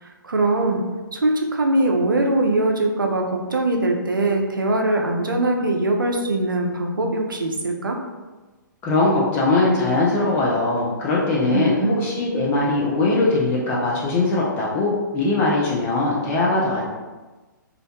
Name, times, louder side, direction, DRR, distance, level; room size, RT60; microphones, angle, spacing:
voice 1, 0.0-8.0 11.5-12.1, right 2 dB, 80° right, 2 dB, 0.4 m, -22 dB
voice 2, 8.8-16.8, left 2 dB, 20° left, -5 dB, 0.4 m, -21 dB
2.4 x 2.1 x 2.6 m, 1.2 s
figure-of-eight pair, 125°, 11 cm